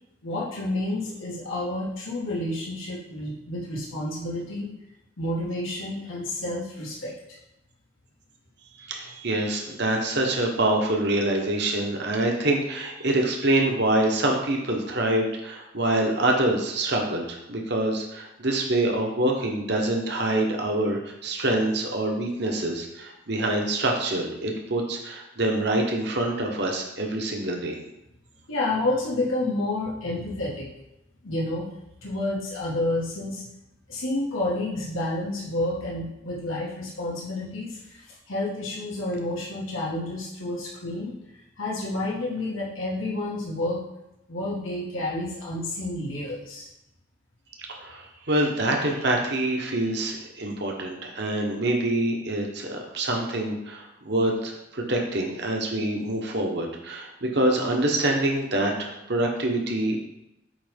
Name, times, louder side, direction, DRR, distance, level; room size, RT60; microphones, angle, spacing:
voice 1, 0.2-4.7 5.2-7.1 28.5-30.7 31.2-31.7 32.0-33.4 33.9-41.2 41.6-43.8 44.3-46.7, left 2 dB, 85° left, -6 dB, 2.0 m, -30 dB
voice 2, 8.8-27.8 47.7-60.0, right 1 dB, 55° right, 1 dB, 1.3 m, -25 dB
8.6 x 3.4 x 5.4 m, 0.90 s
head